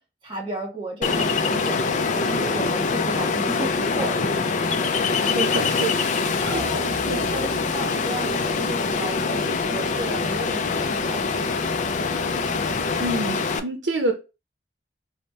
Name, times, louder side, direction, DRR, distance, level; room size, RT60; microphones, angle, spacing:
voice 1, 0.2-4.6 6.5-11.4, right 2 dB, 30° right, 1.4 m, -34 dB
Ocean, 1.0-13.6, left 4 dB, 45° left, 0.4 m, -24 dB
voice 2, 5.2-6.0 6.4-6.6 7.1-7.3 13.0-14.1, right 2 dB, 75° right, 0.6 m, -27 dB
sound 1, 6.4-13.2, equal, 20° left, 1.0 m, -44 dB
4.1 x 2.1 x 3.3 m
head